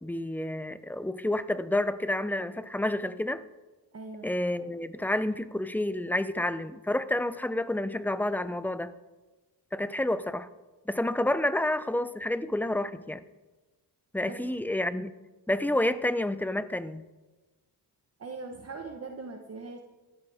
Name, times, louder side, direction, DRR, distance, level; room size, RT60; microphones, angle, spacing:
voice 1, 0.0-3.4 4.2-8.9 9.7-10.5 10.9-13.2 14.1-15.1 15.5-17.0, left 1 dB, 5° left, 0.5 m, -29 dB
voice 2, 3.9-4.3 14.2-14.4 18.2-19.8, right 3 dB, 35° right, 1.2 m, -40 dB
15.5 x 13.0 x 3.5 m
cardioid pair, 85°, 41 cm